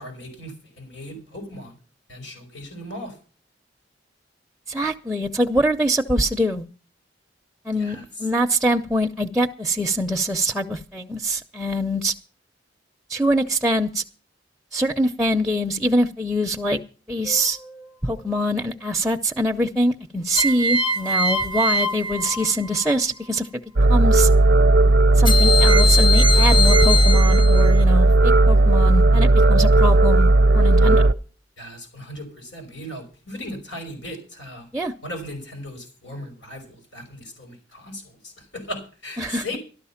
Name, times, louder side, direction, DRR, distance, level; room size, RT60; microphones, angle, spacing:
voice 1, 0.0-1.7 2.1-3.1 7.7-8.0 31.6-34.7 35.0-39.6, left 1 dB, 80° left, 2 dB, 5.5 m, -37 dB
voice 2, 4.7-6.7 7.7-12.1 13.1-14.0 14.7-16.8 17.1-17.6 18.0-23.5 23.9-24.3 25.2-31.1 34.7-34.9 39.2-39.6, equal, ahead, 3 dB, 0.6 m, -24 dB
sound 1, 17.3-17.8 20.4-23.0 25.3-27.8, left 2 dB, 25° left, 0.9 m, -23 dB
sound 2, 23.8-31.1, right 2 dB, 65° right, 0.7 m, -15 dB
13.0 x 12.5 x 5.7 m, 0.37 s
head